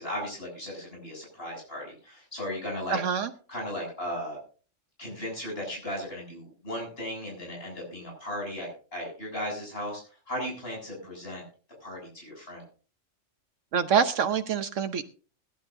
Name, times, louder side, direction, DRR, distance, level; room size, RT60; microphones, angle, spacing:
voice 1, 0.0-3.0 3.5-4.4 5.0-11.4 11.8-12.6, left 1 dB, 50° left, -2 dB, 7.9 m, -36 dB
voice 2, 2.9-3.3 13.7-15.0, right 7 dB, 75° right, 8 dB, 1.2 m, -25 dB
21.0 x 11.5 x 2.7 m, 0.38 s
omnidirectional pair, 1.3 m